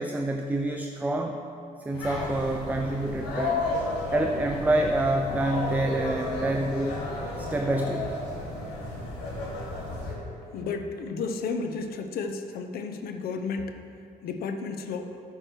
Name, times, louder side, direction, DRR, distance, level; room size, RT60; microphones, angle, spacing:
voice 1, 0.0-1.4 1.8-3.7 4.1-7.0 7.4-8.1, right 1 dB, 10° right, 4 dB, 0.4 m, -27 dB
sound 1, 1.9-10.1, left 2 dB, 85° left, 1.8 m, -33 dB
voice 2, 10.5-13.8 14.2-15.2, left 4 dB, 65° left, 7 dB, 0.7 m, -32 dB
8.8 x 4.8 x 6.2 m, 2.5 s
cardioid pair, 110°, 17 cm